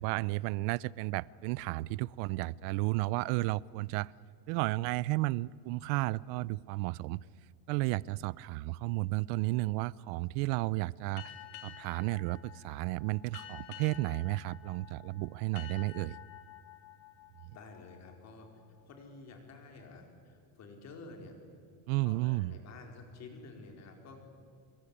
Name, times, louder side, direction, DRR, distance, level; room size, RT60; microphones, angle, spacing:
voice 1, 0.0-4.1 4.5-7.2 7.7-11.2 11.6-16.2 21.9-22.5, right 20 dB, 70° right, 22 dB, 0.6 m, -33 dB
sound 1, 11.2-18.4, left 13 dB, 70° left, 3.5 m, -51 dB
voice 2, 17.5-18.5 18.8-21.3 22.0-24.2, left 3 dB, 35° left, 4 dB, 4.6 m, -50 dB
25.0 x 23.0 x 9.9 m, 2.3 s
cardioid pair, 175°, 48 cm